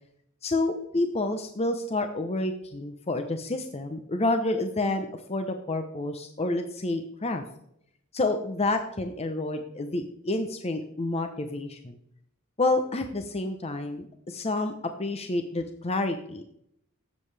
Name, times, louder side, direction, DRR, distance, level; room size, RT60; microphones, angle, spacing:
voice 1, 0.4-7.4 8.1-12.0 12.6-14.7 15.0-16.5, left 2 dB, 30° left, 7 dB, 0.7 m, -29 dB
16.0 x 7.4 x 3.4 m, 0.73 s
head